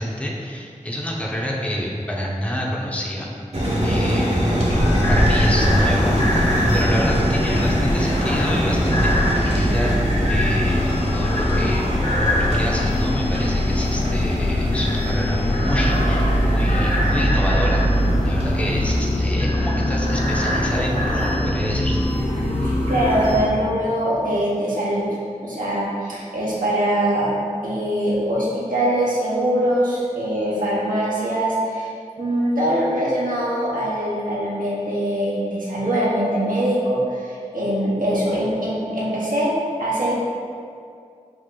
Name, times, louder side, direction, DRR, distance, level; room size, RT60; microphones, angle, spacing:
voice 1, 0.0-3.3 3.8-4.7 5.1-10.0 10.3-12.1 12.4-17.9 18.2-22.1, equal, 10° left, -3 dB, 0.6 m, -27 dB
sound 1, 3.5-18.4, equal, 50° right, 1.0 m, -25 dB
sound 2, 4.7-23.4, left 1 dB, 60° left, 1.2 m, -21 dB
voice 2, 22.6-25.1 25.4-27.3 27.6-31.9 32.2-39.5 39.8-40.1, right 1 dB, 90° right, -7 dB, 0.9 m, -22 dB
5.0 x 2.5 x 3.8 m, 2.3 s
wide cardioid pair, 50°, 14 cm